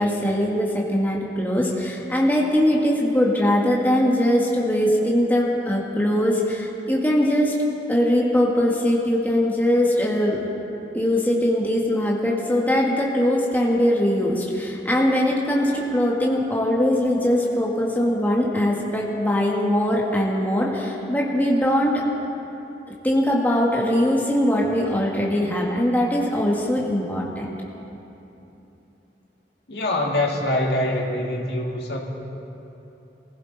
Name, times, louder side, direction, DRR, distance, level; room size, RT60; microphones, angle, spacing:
voice 1, 0.0-7.6 7.9-10.4 10.9-22.0 23.0-27.5, equal, 10° left, -3 dB, 1.8 m, -21 dB
voice 2, 29.7-32.0, left 1 dB, 70° left, -1 dB, 2.3 m, -24 dB
22.0 x 16.0 x 4.1 m, 3.0 s
head